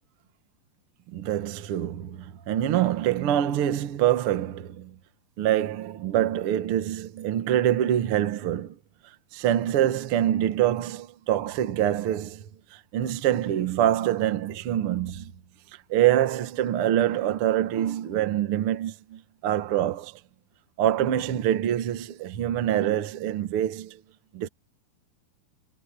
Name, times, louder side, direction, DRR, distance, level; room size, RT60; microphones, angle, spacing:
voice 1, 1.1-4.9 5.4-8.8 9.3-15.3 15.9-20.2 20.8-24.0 24.3-24.5, right 11 dB, 80° right, 1.2 m, -25 dB
omnidirectional pair, 4.6 m